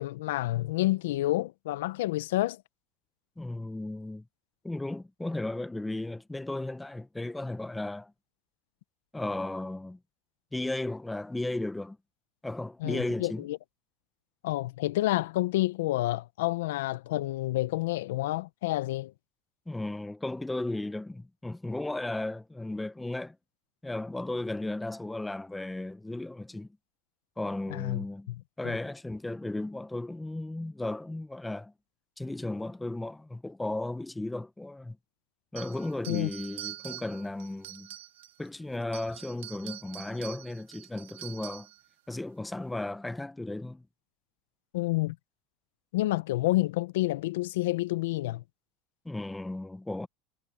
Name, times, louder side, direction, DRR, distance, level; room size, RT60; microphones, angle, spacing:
voice 1, 0.0-2.6 12.8-13.6 14.4-19.1 27.7-28.4 36.1-36.3 44.7-45.2 45.9-48.4, left 17 dB, 85° left, 0.7 m, -29 dB
voice 2, 3.4-4.2 4.6-8.1 9.1-10.0 10.5-12.0 12.4-13.4 19.7-23.4 23.8-26.7 27.4-28.3 28.6-31.7 32.2-35.0 35.5-37.9 38.4-41.7 42.1-43.8 49.0-50.1, left 2 dB, 10° left, 1.0 m, -35 dB
sound 1, 35.6-38.5 38.8-41.8, right 14 dB, 90° right, 2.8 m, -45 dB
supercardioid pair, 105°, 0 cm